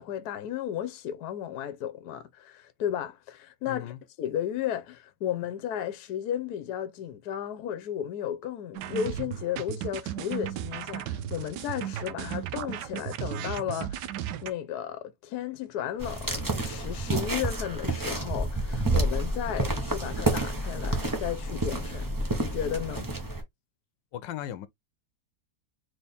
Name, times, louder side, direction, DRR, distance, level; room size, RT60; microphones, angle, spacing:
voice 1, 0.0-3.9 4.2-14.1 14.4-23.1, left 10 dB, 70° left, 1.2 m, -34 dB
voice 2, 3.7-4.0 24.1-24.7, left 11 dB, 90° left, 1.3 m, -37 dB
sound 1, 8.7-14.5, right 11 dB, 80° right, 1.2 m, -35 dB
sound 2, 16.0-23.4, right 2 dB, 20° right, 0.6 m, -29 dB
4.2 x 3.2 x 3.4 m
omnidirectional pair, 1.9 m